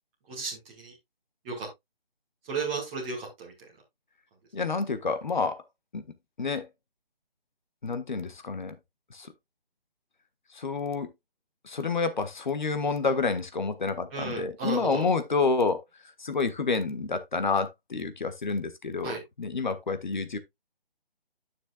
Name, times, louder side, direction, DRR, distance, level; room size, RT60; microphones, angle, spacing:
voice 1, 0.3-0.9 1.4-1.7 2.5-3.5 14.1-15.1 19.0-19.2, right 4 dB, 10° right, 1.3 m, -34 dB
voice 2, 4.5-5.6 5.9-6.0 6.4-6.7 7.8-8.8 9.1-9.3 10.5-11.1 11.6-20.4, left 4 dB, 50° left, 1.4 m, -29 dB
9.8 x 6.8 x 2.3 m
figure-of-eight pair, 145°, 29 cm